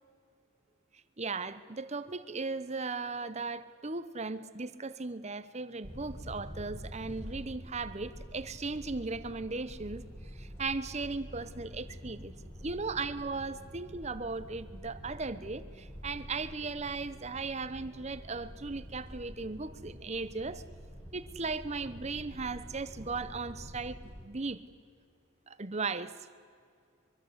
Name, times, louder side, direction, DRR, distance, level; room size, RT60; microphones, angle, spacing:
voice 1, 1.2-10.0 10.3-12.3 12.6-20.6 21.1-24.6 25.5-26.1, right 3 dB, 35° right, 14 dB, 1.0 m, -37 dB
sound 1, 5.8-24.2, equal, 10° left, 5.9 m, -47 dB
24.0 x 24.0 x 8.1 m, 2.2 s
head